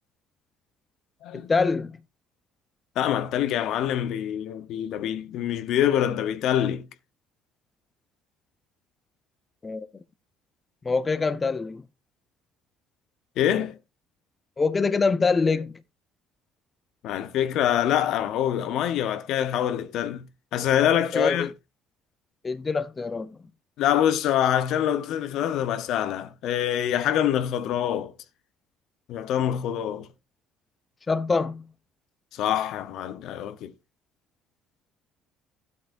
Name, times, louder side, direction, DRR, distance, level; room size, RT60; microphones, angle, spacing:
voice 1, 1.3-2.0 9.6-9.9 10.8-11.8 14.6-15.7 21.1-21.5 22.4-23.3 31.1-31.6, left 4 dB, 25° left, 0.7 m, -24 dB
voice 2, 3.0-6.9 13.4-13.8 17.0-21.5 23.8-28.1 29.1-30.1 32.3-33.7, left 10 dB, 70° left, 0.9 m, -25 dB
12.5 x 8.2 x 2.6 m
supercardioid pair, 85°, 0 cm